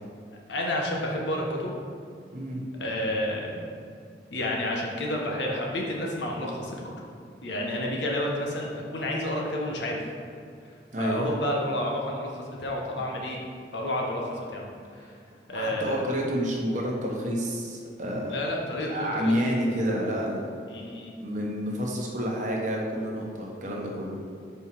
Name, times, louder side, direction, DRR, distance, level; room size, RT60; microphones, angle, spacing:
voice 1, 0.5-1.7 2.8-3.6 4.3-6.9 7.4-10.0 11.0-13.4 13.7-14.7 15.5-16.0 18.3-19.6 20.7-21.1, left 1 dB, 85° left, -1 dB, 1.2 m, -30 dB
voice 2, 2.3-2.6 10.9-11.3 15.5-18.4 18.9-20.5 21.2-24.2, equal, 45° right, -2 dB, 1.1 m, -29 dB
5.4 x 4.5 x 6.0 m, 2.3 s
head